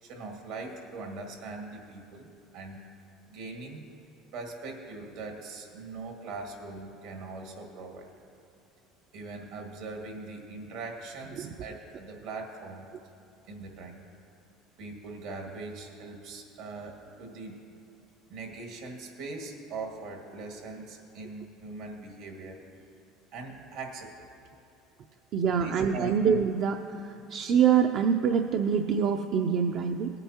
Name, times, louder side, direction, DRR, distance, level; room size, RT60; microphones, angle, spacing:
voice 1, 0.0-2.3 2.5-2.9 3.3-3.8 4.3-8.1 9.1-12.9 13.5-14.1 14.8-17.7 18.3-22.6 23.3-24.3 25.6-26.2, right 3 dB, 75° right, 1 dB, 1.9 m, -41 dB
voice 2, 25.3-26.8 27.3-30.1, right 7 dB, 55° right, 5 dB, 0.5 m, -25 dB
18.5 x 9.1 x 2.9 m, 2.9 s
supercardioid pair, 105°, 0 cm